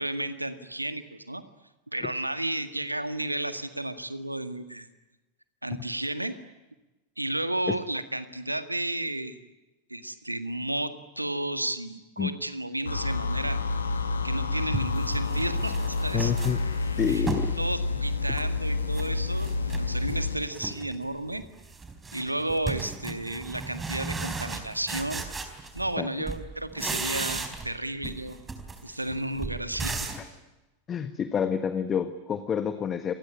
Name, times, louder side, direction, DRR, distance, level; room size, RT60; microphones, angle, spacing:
voice 1, 0.0-1.4 1.9-4.9 5.6-6.3 7.2-9.4 9.9-13.6 14.2-16.3 17.1-17.2 17.6-19.5 19.8-21.4 22.1-25.2 25.7-28.4 28.8-30.1, right 1 dB, 85° right, 11 dB, 1.9 m, -32 dB
sound 1, 12.9-20.4, left 3 dB, 75° left, 3.1 m, -29 dB
sound 2, 14.1-14.2 14.7-17.5 18.0-19.1 19.4-20.2 20.5-21.0 21.3-26.0 26.3-27.8 28.0-30.3, right 3 dB, 15° right, 4.1 m, -36 dB
voice 2, 16.1-16.6 17.0-17.5 22.2-22.3 26.0-26.1 30.9-33.1, left 7 dB, 25° left, 11 dB, 1.4 m, -28 dB
27.5 x 20.5 x 9.9 m, 1.1 s
figure-of-eight pair, 90°, 0 cm